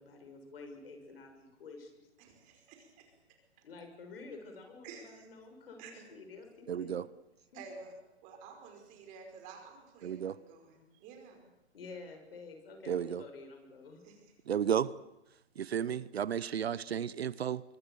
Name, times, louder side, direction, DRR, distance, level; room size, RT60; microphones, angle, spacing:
voice 1, 0.0-1.9 3.6-7.0 11.7-14.0, left 3 dB, 60° left, 6.8 m, -49 dB
voice 2, 2.2-3.1 4.8-5.3 5.8-6.0 7.5-7.9 8.2-11.4 14.0-14.2, right 5 dB, 25° right, 5.1 m, -51 dB
voice 3, 6.7-7.0 10.0-10.4 12.9-13.2 14.5-14.9 15.6-17.6, right 8 dB, 65° right, 0.9 m, -33 dB
24.5 x 24.0 x 7.0 m
hypercardioid pair, 150°, 33 cm